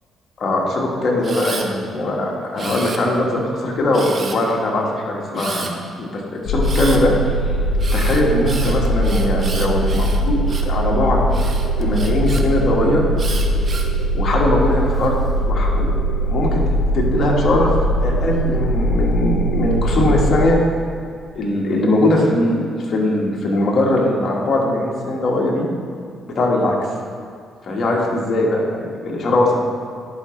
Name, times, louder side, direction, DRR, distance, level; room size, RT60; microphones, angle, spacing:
voice 1, 0.4-7.1 7.9-11.3 11.8-13.0 14.1-15.1 15.4-15.9 16.3-16.6 16.9-17.7 18.0-20.6 21.3-25.7 26.3-26.7 27.7-29.6, left 1 dB, 55° left, -2 dB, 1.6 m, -20 dB
Camera, 1.2-1.7 2.6-3.3 3.9-4.5 5.4-5.7 6.6-7.0 7.8-10.8 11.3-12.4 13.2-14.0 14.6-15.1, right 4 dB, 40° right, 0.7 m, -32 dB
sound 1, 6.5-20.5, right 1 dB, 85° left, 0.5 m, -20 dB
11.0 x 5.2 x 3.2 m, 2.2 s
cardioid pair, 90°, 0 cm